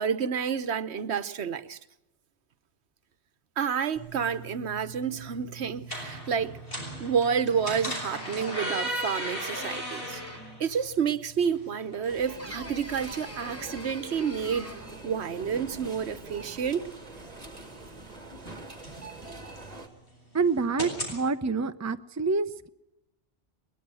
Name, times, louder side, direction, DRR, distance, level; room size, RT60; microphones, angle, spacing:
voice 1, 0.0-1.8 3.6-6.6 7.0-10.2 10.6-14.7 15.0-16.9, right 7 dB, 75° right, 1.2 m, -29 dB
sound 1, 4.0-21.2, equal, 55° left, 6.6 m, -40 dB
sound 2, 8.2-10.7 12.4-15.0, left 1 dB, 15° left, 1.5 m, -43 dB
sound 3, 12.1-19.9, right 2 dB, 35° right, 2.2 m, -44 dB
voice 2, 20.3-22.7, right 4 dB, 20° right, 0.7 m, -27 dB
21.5 x 21.5 x 6.3 m
omnidirectional pair, 1.1 m